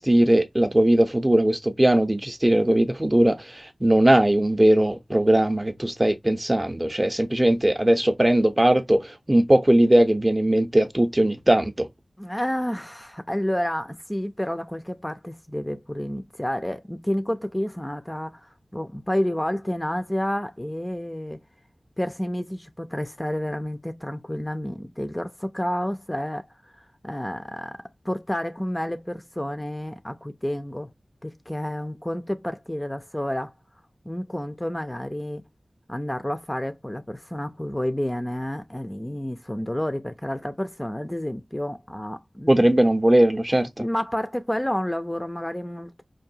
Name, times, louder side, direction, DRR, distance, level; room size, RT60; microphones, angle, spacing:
voice 1, 0.0-11.9 42.5-43.8, right 1 dB, 20° right, 0.7 m, -19 dB
voice 2, 12.2-21.4 22.0-26.5 26.8-30.9 31.2-33.5 34.1-35.4 35.9-42.6 43.8-46.0, equal, 15° left, 0.5 m, -30 dB
4.7 x 2.6 x 2.7 m
wide cardioid pair, 75°, 0 cm